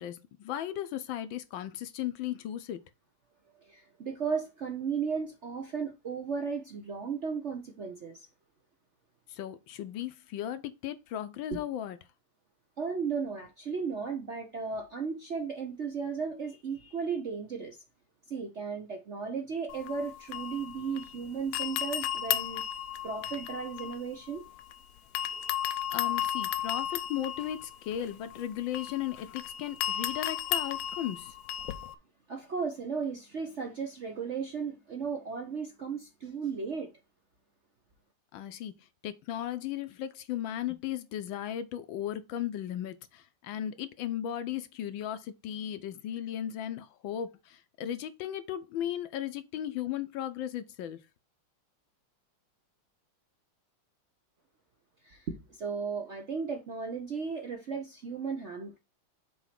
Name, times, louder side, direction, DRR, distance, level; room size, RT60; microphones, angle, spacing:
voice 1, 0.0-2.8 9.3-12.0 25.9-31.3 38.3-38.7 39.0-51.0, left 11 dB, 70° left, 1.3 m, -36 dB
voice 2, 3.6-8.3 11.5-11.6 12.8-17.8 18.3-22.6 23.0-24.4 32.3-36.9 55.0-58.8, right 5 dB, 60° right, 0.7 m, -35 dB
sound 1, 19.7-21.2 21.5-24.7 25.2-31.9, left 11 dB, 90° left, 1.6 m, -34 dB
7.1 x 3.1 x 5.8 m
omnidirectional pair, 2.4 m